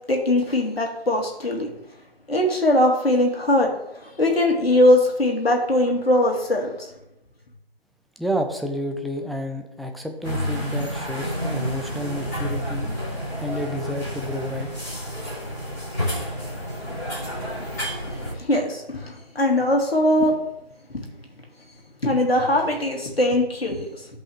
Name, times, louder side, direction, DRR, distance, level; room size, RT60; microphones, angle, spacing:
voice 1, 0.1-1.7 2.3-6.9 18.3-20.4 20.9-21.0 22.0-24.1, left 1 dB, 70° left, 1 dB, 2.5 m, -21 dB
voice 2, 8.2-12.9 13.4-14.7, equal, ahead, 3 dB, 0.4 m, -30 dB
sound 1, 10.2-18.3, equal, 15° left, 3.0 m, -30 dB
15.0 x 5.4 x 3.4 m, 0.84 s
figure-of-eight pair, 180°, 31 cm